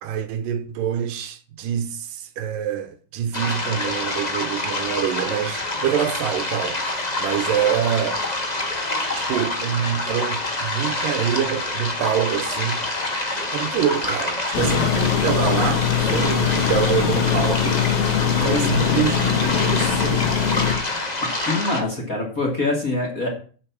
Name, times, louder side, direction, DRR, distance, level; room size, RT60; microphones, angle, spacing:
voice 1, 0.0-8.2 9.1-12.8 13.5-20.5, right 9 dB, 75° right, 2.5 m, -26 dB
sound 1, 3.3-21.8, left 2 dB, 55° left, 0.4 m, -27 dB
sound 2, 14.5-20.8, left 8 dB, 80° left, 3.3 m, -22 dB
voice 2, 18.3-19.0 19.6-19.7 20.3-21.1 21.4-23.3, left 2 dB, 25° left, 2.5 m, -26 dB
8.0 x 7.3 x 8.5 m
omnidirectional pair, 4.0 m